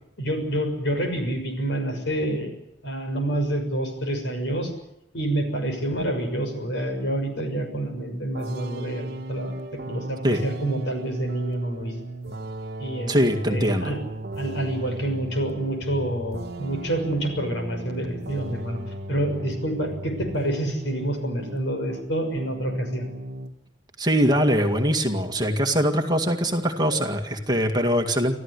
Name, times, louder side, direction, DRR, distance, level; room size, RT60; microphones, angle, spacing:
voice 1, 0.2-2.5 2.8-4.7 5.1-9.5 9.9-11.9 12.8-13.1 13.5-14.0 14.3-18.8 19.1-23.1, right 1 dB, 65° left, 5 dB, 6.2 m, -27 dB
sound 1, 8.3-22.1 22.4-23.5, right 1 dB, 55° right, 1.5 m, -36 dB
voice 2, 13.1-13.9 24.0-28.3, equal, 20° right, 4 dB, 2.1 m, -22 dB
27.0 x 15.0 x 9.8 m, 0.82 s
head